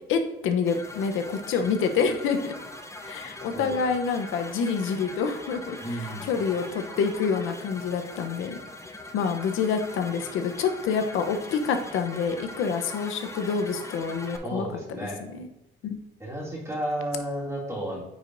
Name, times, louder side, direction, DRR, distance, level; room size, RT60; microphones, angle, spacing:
voice 1, 0.1-2.6 3.0-8.6 9.1-15.0 15.3-15.5 15.8-16.0, left 5 dB, 85° left, 7 dB, 0.8 m, -27 dB
sound 1, 0.7-14.4, left 2 dB, 15° left, 0.7 m, -41 dB
voice 2, 5.8-6.3 14.4-15.2 16.2-18.0, right 1 dB, 15° right, -4 dB, 2.4 m, -32 dB
9.1 x 4.9 x 2.6 m, 0.87 s
cardioid pair, 90°, 20 cm